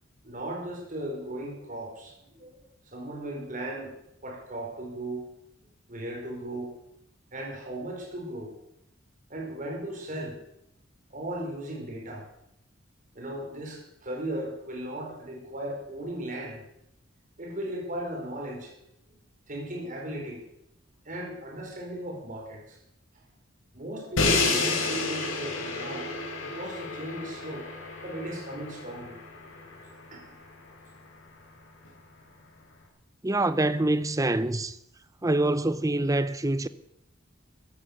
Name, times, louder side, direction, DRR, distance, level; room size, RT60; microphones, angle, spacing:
voice 1, 0.2-3.9 4.2-5.2 5.9-6.7 7.3-8.5 9.3-10.4 11.1-12.3 13.1-16.6 17.4-18.7 19.5-20.4 21.0-22.8 23.7-26.1 26.4-27.7 28.0-29.2 30.1-30.2, right 1 dB, 40° right, 5.0 m, -37 dB
Crash cymbal, 24.2-30.1, left 3 dB, 90° left, 3.6 m, -30 dB
voice 2, 33.2-34.8 35.2-36.7, right 2 dB, 15° right, 0.7 m, -25 dB
15.5 x 11.5 x 6.7 m
head